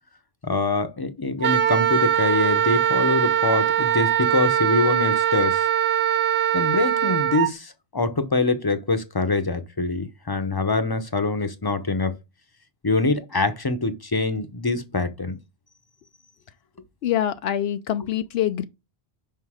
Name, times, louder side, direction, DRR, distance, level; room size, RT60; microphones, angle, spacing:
voice 1, 0.4-5.7 6.5-12.2 12.8-15.4, left 3 dB, 25° left, 0.7 m, -24 dB
Wind instrument woodwind instrument, 1.4-7.5, right 10 dB, 70° right, 0.8 m, -21 dB
voice 2, 17.0-18.6, left 11 dB, 80° left, 0.8 m, -25 dB
5.6 x 5.2 x 4.8 m
omnidirectional pair, 1.0 m